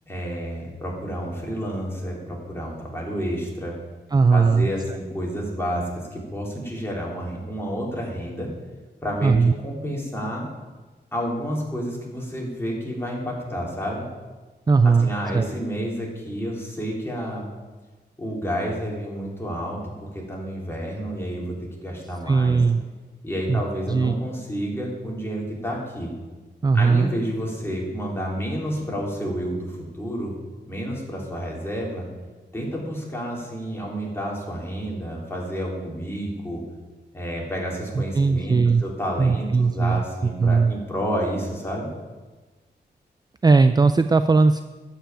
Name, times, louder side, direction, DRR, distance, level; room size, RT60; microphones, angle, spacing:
voice 1, 0.1-3.8 4.3-8.5 9.0-9.3 9.6-10.5 11.1-14.1 15.0-17.5 18.2-22.6 23.2-26.1 26.7-30.3 30.7-32.1 32.5-36.6 37.1-41.9, equal, 15° left, -3 dB, 3.5 m, -30 dB
voice 2, 4.1-5.0 9.2-9.5 14.7-15.4 22.3-22.8 23.5-23.6 23.9-24.1 26.6-27.1 38.0-38.8 39.2-40.0 40.4-40.7 43.4-44.6, right 4 dB, 20° right, 11 dB, 0.4 m, -18 dB
11.5 x 5.8 x 9.0 m, 1.2 s
wide cardioid pair, 95°, 18 cm